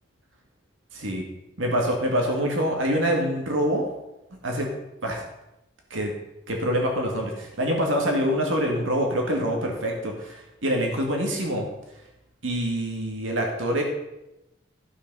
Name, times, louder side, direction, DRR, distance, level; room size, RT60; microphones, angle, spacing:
voice 1, 0.9-1.2 1.6-3.8 4.4-4.7 5.0-5.2 5.9-6.1 6.5-11.7 12.4-13.8, equal, 85° right, 0 dB, 2.1 m, -25 dB
13.5 x 5.9 x 5.4 m, 0.92 s
head